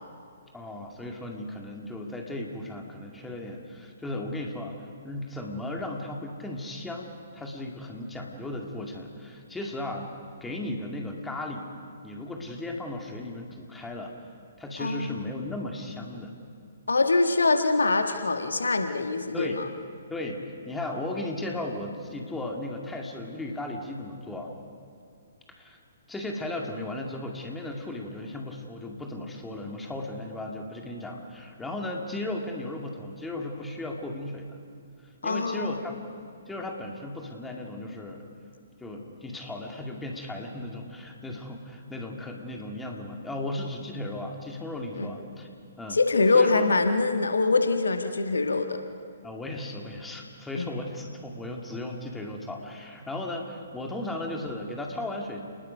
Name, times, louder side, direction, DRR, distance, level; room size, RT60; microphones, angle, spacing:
voice 1, 0.5-4.8 5.0-10.1 10.4-11.7 12.0-14.1 14.6-16.3 19.3-19.6 20.1-24.6 25.6-25.8 26.1-34.6 35.2-36.0 36.5-38.3 38.8-45.5 45.8-46.0 46.3-46.6 49.2-55.4, left 1 dB, 5° left, 1 dB, 2.1 m, -36 dB
voice 2, 14.8-15.3 16.9-19.6 35.2-35.8 44.9-45.1 45.9-48.8 50.5-50.7, left 3 dB, 65° left, 6 dB, 1.4 m, -24 dB
29.5 x 20.0 x 5.3 m, 2.2 s
figure-of-eight pair, 125°, 0 cm